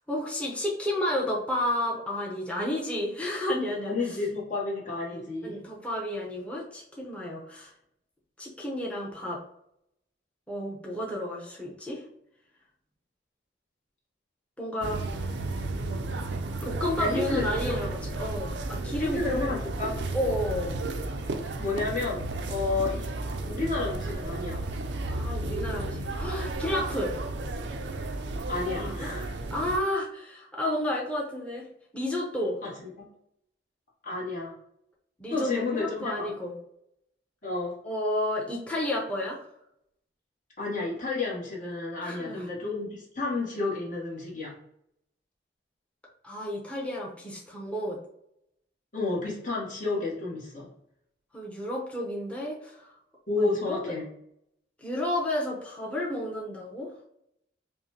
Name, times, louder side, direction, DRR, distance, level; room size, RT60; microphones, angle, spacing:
voice 1, 0.0-3.9 5.1-7.7 8.4-9.4 10.5-12.0 14.6-15.0 16.6-19.5 20.1-20.8 25.1-27.1 28.7-29.1 29.5-31.7 31.9-32.6 35.2-36.6 37.8-39.4 42.0-42.5 46.2-48.0 51.3-52.9 53.4-53.9 54.8-56.9, left 1 dB, 5° left, -4 dB, 0.8 m, -31 dB
voice 2, 3.8-5.6 16.9-17.8 19.0-20.0 21.6-22.2 22.5-23.1 23.4-24.6 28.5-29.3 32.6-33.1 34.0-34.5 35.3-36.2 37.4-37.8 40.6-44.5 48.9-50.7 53.3-54.0, left 3 dB, 45° left, -4 dB, 1.2 m, -31 dB
sound 1, 14.8-29.8, right 2 dB, 70° right, 0.5 m, -33 dB
5.2 x 2.2 x 2.9 m, 0.74 s
head